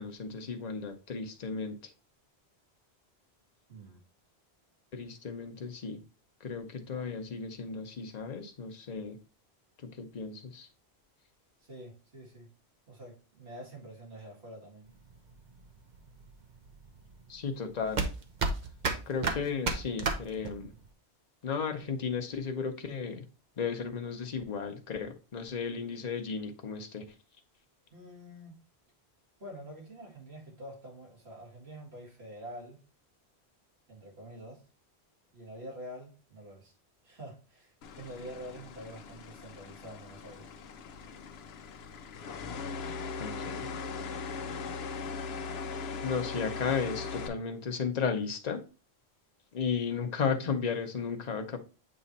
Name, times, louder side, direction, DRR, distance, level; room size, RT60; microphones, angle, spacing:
voice 1, 0.0-1.8 4.9-6.0 6.4-9.2 10.0-10.7 17.3-18.0 19.1-20.7 21.4-23.3 23.6-27.0 43.2-43.7 46.0-48.6 49.5-51.6, left 5 dB, 45° left, 0.9 m, -34 dB
voice 2, 3.7-4.0 11.6-12.5 12.9-14.9 27.9-28.6 29.4-32.8 33.9-34.7 35.3-36.7 37.0-40.5, equal, 75° right, 2.5 m, -47 dB
sound 1, 14.9-20.9, right 3 dB, 50° right, 0.9 m, -33 dB
sound 2, 37.8-47.3, left 5 dB, 75° left, 0.9 m, -39 dB
7.6 x 3.1 x 4.1 m
omnidirectional pair, 1.1 m